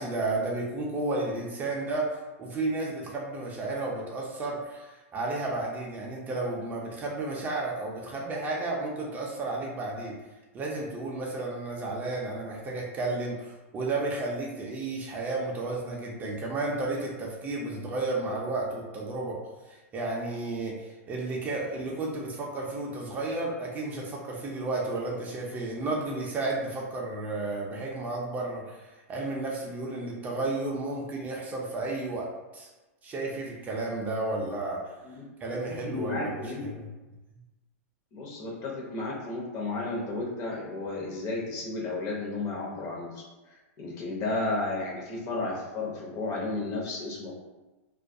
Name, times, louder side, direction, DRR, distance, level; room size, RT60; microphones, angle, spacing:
voice 1, 0.0-10.2 10.5-19.4 19.7-32.7 33.0-34.8 35.4-36.3 36.7-36.8, right 2 dB, 20° right, -2 dB, 0.4 m, -32 dB
voice 2, 35.7-36.6 38.1-43.2 43.8-47.3, left 2 dB, 40° left, -3 dB, 0.7 m, -33 dB
2.3 x 2.2 x 2.6 m, 1.1 s
hypercardioid pair, 135°, 8 cm